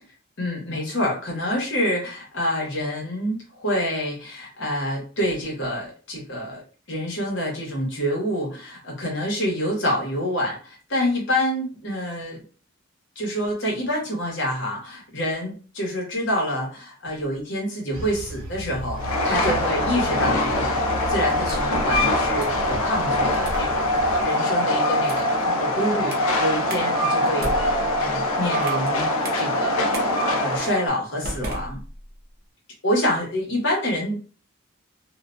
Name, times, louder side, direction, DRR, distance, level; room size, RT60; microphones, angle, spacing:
voice 1, 0.4-12.4 13.2-20.8 21.1-30.0 30.3-31.8 32.8-34.2, equal, 60° left, -2 dB, 1.0 m, -27 dB
sound 1, 17.9-24.2, right 1 dB, 75° right, 0.8 m, -34 dB
Train, 19.0-30.9, left 1 dB, 75° left, 0.4 m, -23 dB
sound 2, 21.3-21.9 22.4-22.7 23.4-23.7 24.2-24.5 25.0-25.4 26.1-26.3 26.7-26.8 27.3-28.9 29.2-29.4 29.9-30.1 30.6-30.7 31.2-32.3, right 1 dB, 45° right, 0.5 m, -35 dB
2.4 x 2.1 x 2.5 m, 0.37 s
head